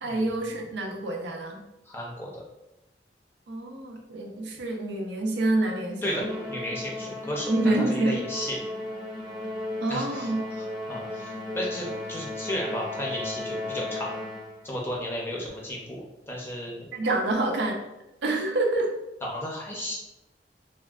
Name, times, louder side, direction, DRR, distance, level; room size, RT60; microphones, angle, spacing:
voice 1, 0.0-1.6 3.5-6.3 7.5-8.2 9.8-10.4 16.9-17.8 18.2-18.9, right 2 dB, 80° right, 2 dB, 0.5 m, -27 dB
voice 2, 1.9-2.4 6.0-7.5 7.9-8.6 9.9-14.1 14.6-16.9 19.2-20.0, equal, 15° left, -2 dB, 0.5 m, -34 dB
Musical instrument, 6.2-14.7, left 1 dB, 30° right, 0.8 m, -35 dB
3.4 x 2.2 x 2.3 m, 0.92 s
head